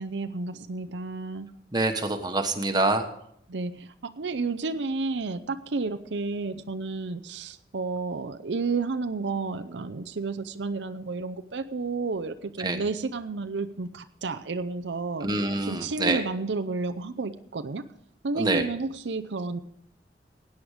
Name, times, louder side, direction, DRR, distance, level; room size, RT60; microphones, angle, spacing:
voice 1, 0.0-1.5 3.5-15.3 15.7-17.9 18.2-19.6, right 3 dB, 85° right, 8 dB, 0.6 m, -31 dB
voice 2, 1.7-3.1 12.6-12.8 15.2-16.2 18.3-18.6, right 2 dB, 25° right, 5 dB, 1.3 m, -26 dB
16.5 x 9.6 x 5.0 m, 0.72 s
head